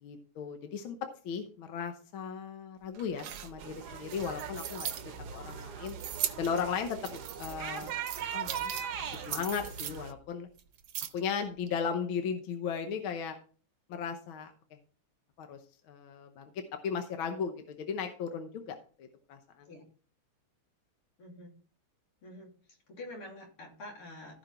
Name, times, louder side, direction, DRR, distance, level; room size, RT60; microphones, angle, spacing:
voice 1, 0.0-1.0 1.3-4.9 5.3-6.0 6.4-7.9 8.3-8.7 9.1-10.5 11.1-13.4 13.9-14.5 15.4-15.6 15.9-16.5 16.8-19.7, left 6 dB, 70° left, 6 dB, 1.7 m, -36 dB
sound 1, 2.9-5.0 5.9-6.5 6.9-8.8 9.1-10.0 10.6-11.3 11.7-11.8, right 10 dB, 90° right, 1.9 m, -38 dB
sound 2, 3.6-10.1, right 8 dB, 60° right, 1.2 m, -40 dB
voice 2, 21.2-21.6 22.2-24.4, left 1 dB, 85° left, -1 dB, 4.0 m, -47 dB
15.5 x 5.2 x 4.3 m, 0.41 s
omnidirectional pair, 2.4 m